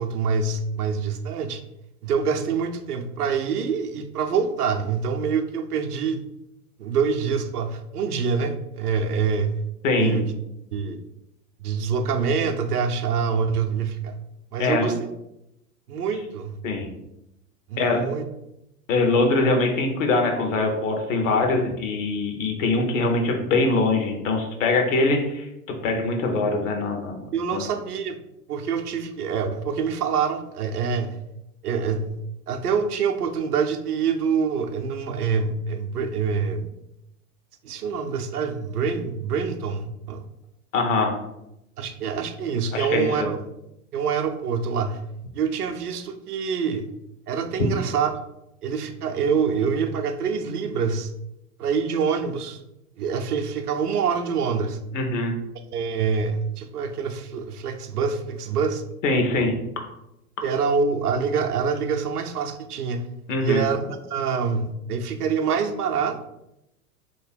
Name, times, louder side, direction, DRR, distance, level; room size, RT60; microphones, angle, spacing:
voice 1, 0.0-1.6 2.0-6.2 6.8-9.6 10.0-10.3 10.7-11.0 11.6-14.2 14.5-14.9 15.9-16.6 17.7-18.3 27.3-28.2 28.5-31.1 31.6-32.2 32.5-36.7 37.6-40.2 41.8-43.4 43.9-45.0 45.3-46.8 47.3-48.2 48.6-51.1 51.6-52.6 53.0-54.8 55.7-58.8 60.4-63.1 63.4-66.2, right 6 dB, 75° right, 5 dB, 0.6 m, -25 dB
voice 2, 9.8-10.2 14.6-14.9 16.6-16.9 17.8-18.1 18.9-25.5 25.8-27.2 27.5-27.6 40.7-41.1 42.7-43.1 47.6-47.7 54.9-55.3 59.0-59.5 63.3-63.7, left 3 dB, 55° left, 3 dB, 1.1 m, -22 dB
3.3 x 3.0 x 4.4 m, 0.86 s
figure-of-eight pair, 90°, 46 cm